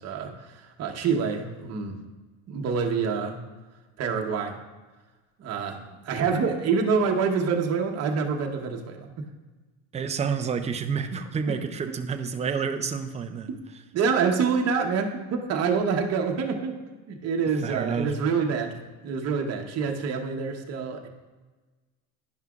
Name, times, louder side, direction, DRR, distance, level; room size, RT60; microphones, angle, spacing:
voice 1, 0.0-2.0 2.5-3.4 4.0-4.6 5.4-9.3 11.1-11.2 11.5-11.6 13.9-16.8 17.1-18.7 19.0-21.1, right 5 dB, 45° right, 2 dB, 1.0 m, -26 dB
voice 2, 9.9-13.5 17.6-18.1, right 6 dB, 20° right, 7 dB, 0.5 m, -29 dB
10.5 x 5.6 x 2.4 m, 1.2 s
cardioid pair, 120°, 37 cm